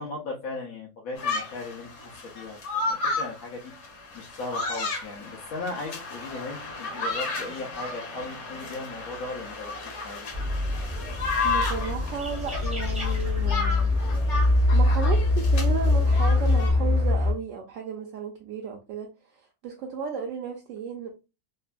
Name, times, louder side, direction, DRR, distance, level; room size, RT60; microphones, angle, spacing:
voice 1, 0.0-3.7 4.1-10.3, left 3 dB, 85° left, 1.2 m, -37 dB
sound 1, 1.2-16.7, left 3 dB, 60° left, 1.0 m, -33 dB
sound 2, 10.3-17.3, left 2 dB, 5° right, 0.6 m, -23 dB
voice 2, 11.4-13.9 14.7-19.1 19.6-21.1, right 6 dB, 70° right, 0.9 m, -34 dB
3.3 x 2.2 x 2.4 m
omnidirectional pair, 1.4 m